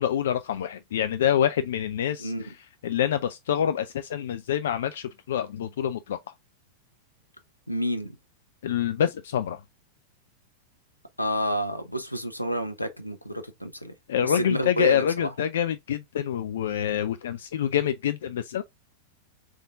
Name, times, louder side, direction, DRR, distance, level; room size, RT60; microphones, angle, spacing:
voice 1, 0.0-2.5 2.8-6.2 8.6-9.6 14.1-18.6, left 9 dB, 60° left, 0.3 m, -26 dB
voice 2, 7.7-8.1 11.2-13.9 14.2-15.3, equal, 90° left, 0.7 m, -29 dB
3.8 x 3.6 x 3.5 m
figure-of-eight pair, 95°, 0 cm